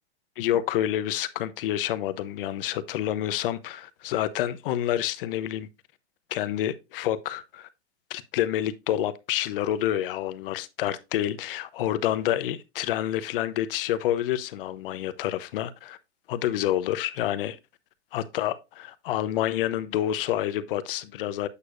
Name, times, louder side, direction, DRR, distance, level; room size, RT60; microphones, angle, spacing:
voice 1, 0.4-5.7 6.3-7.7 8.1-16.0 16.3-17.6 18.1-21.5, left 12 dB, 55° left, 0.8 m, -28 dB
8.3 x 6.6 x 2.5 m
supercardioid pair, 150°, 33 cm